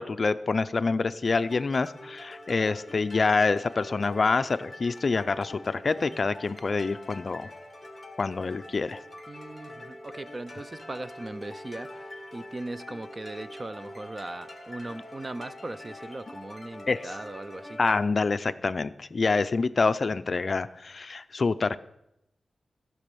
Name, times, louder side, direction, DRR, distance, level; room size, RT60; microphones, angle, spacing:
voice 1, 0.0-7.5 8.2-9.0 16.9-17.1 17.8-21.8, left 4 dB, 40° left, 12 dB, 0.4 m, -26 dB
sound 1, 1.3-18.0, left 1 dB, 5° left, 1.6 m, -45 dB
voice 2, 9.3-17.8, right 2 dB, 25° right, 13 dB, 0.4 m, -39 dB
14.5 x 6.2 x 6.8 m, 0.84 s
wide cardioid pair, 170°, 0 cm